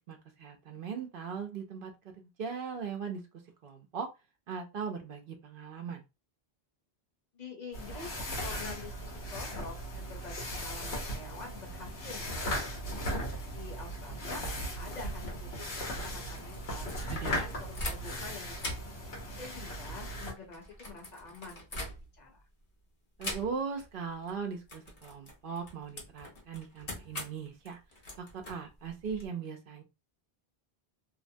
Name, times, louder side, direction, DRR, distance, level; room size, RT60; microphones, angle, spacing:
voice 1, 0.1-3.2 3.6-4.1 4.5-6.0 17.1-17.5 23.2-27.8 28.2-29.8, right 6 dB, 65° right, 3 dB, 0.7 m, -39 dB
voice 2, 7.3-12.8 13.5-19.0 19.4-22.4, left 3 dB, 50° left, 1 dB, 0.8 m, -47 dB
sound 1, 7.7-20.3, equal, 90° left, 1.2 m, -37 dB
sound 2, 16.0-18.3 18.5-22.4 23.2-23.9 24.1-24.3 24.7-29.3, left 1 dB, 65° left, 1.1 m, -43 dB
2.7 x 2.1 x 2.6 m, 0.25 s
omnidirectional pair, 1.0 m